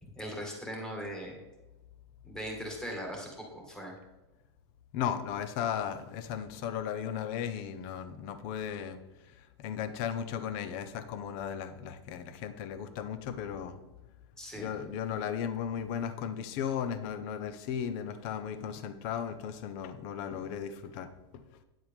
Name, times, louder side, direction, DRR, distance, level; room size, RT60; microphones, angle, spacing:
voice 1, 0.0-1.4 2.2-4.0 14.4-14.7, equal, 5° left, -1 dB, 2.1 m, -40 dB
voice 2, 4.9-9.0 9.6-13.8 14.6-21.1, left 8 dB, 45° left, 11 dB, 0.9 m, -36 dB
9.6 x 7.8 x 3.6 m, 1.1 s
supercardioid pair, 140°, 14 cm